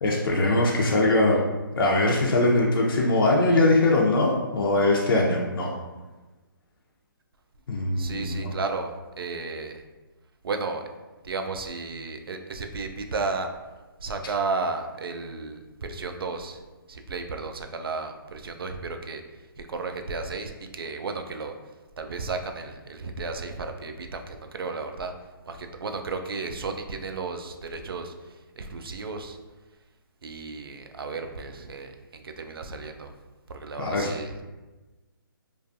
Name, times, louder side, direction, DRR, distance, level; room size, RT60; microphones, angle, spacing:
voice 1, 0.0-1.4 1.8-5.7 7.7-8.5 33.8-34.1, left 2 dB, 70° left, -2 dB, 0.5 m, -22 dB
voice 2, 7.9-9.8 10.4-10.8 11.2-13.5 14.0-16.6 16.9-21.6 22.0-25.1 25.5-29.4 30.2-33.1 33.5-34.4, right 4 dB, 80° right, 5 dB, 0.4 m, -33 dB
2.5 x 2.3 x 2.5 m, 1.2 s
hypercardioid pair, 150°, 12 cm